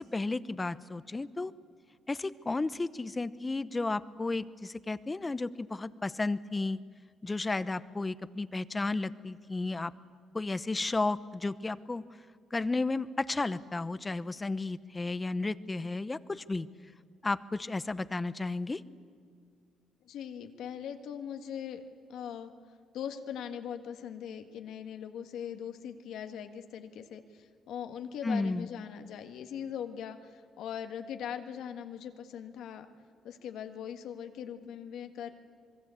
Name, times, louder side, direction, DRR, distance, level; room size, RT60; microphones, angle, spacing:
voice 1, 0.0-1.5 2.1-6.8 7.2-9.9 10.3-12.0 12.5-16.7 17.2-18.8 28.2-28.7, left 3 dB, 20° left, 16 dB, 0.8 m, -33 dB
voice 2, 20.0-21.8 22.1-22.5 22.9-32.9 33.2-35.3, left 8 dB, 80° left, 7 dB, 1.6 m, -40 dB
26.0 x 21.5 x 8.4 m, 2.1 s
cardioid pair, 90°, 0 cm